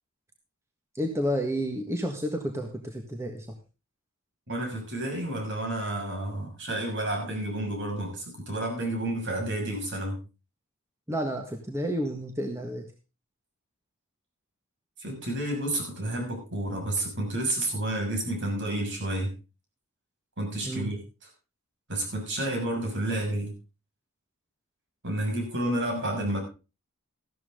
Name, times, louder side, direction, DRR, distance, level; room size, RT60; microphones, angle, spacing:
voice 1, 0.9-3.5 11.1-12.8 20.6-20.9, equal, 15° right, 1.6 m, -30 dB
voice 2, 4.5-10.2 15.0-19.3 20.4-21.0 21.9-23.5 25.0-26.4, right 1 dB, 60° right, 6.5 m, -30 dB
14.5 x 12.5 x 3.8 m
head